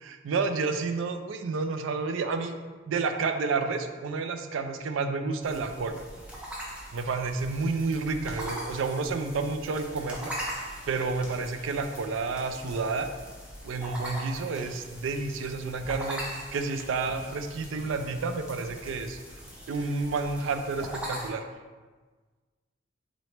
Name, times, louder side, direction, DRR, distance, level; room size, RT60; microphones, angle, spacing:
voice 1, 0.0-2.5 2.9-6.0 6.9-10.3 10.9-13.1 13.6-19.2 19.7-21.4, right 4 dB, 80° right, 7 dB, 0.3 m, -30 dB
sound 1, 5.4-21.3, equal, 5° right, 0.6 m, -41 dB
4.0 x 2.9 x 3.2 m, 1.4 s
head